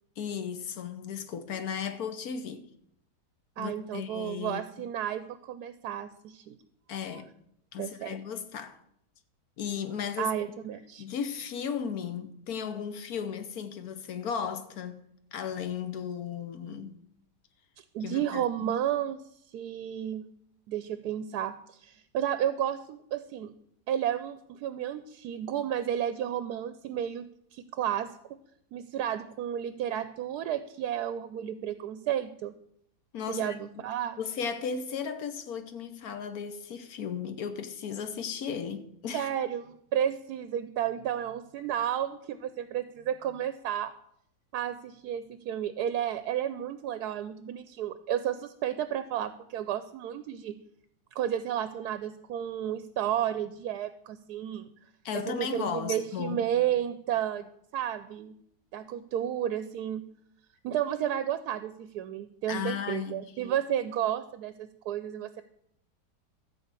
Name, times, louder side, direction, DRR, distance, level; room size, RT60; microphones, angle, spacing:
voice 1, 0.2-2.6 3.6-4.6 6.9-7.3 7.7-8.8 9.6-10.3 11.0-15.0 15.3-17.0 18.0-18.7 33.1-33.6 34.2-39.3 55.0-56.5 62.5-63.2, left 7 dB, 65° left, 1.3 m, -35 dB
voice 2, 3.6-6.6 7.8-8.2 10.2-11.0 17.9-19.2 19.5-20.3 20.7-23.5 23.9-27.2 27.5-28.4 28.7-32.5 33.3-34.2 39.1-43.9 44.5-50.6 51.1-54.7 55.1-58.3 58.7-60.0 60.6-65.4, right 10 dB, 75° right, 1.1 m, -32 dB
13.5 x 4.8 x 8.2 m
omnidirectional pair, 1.8 m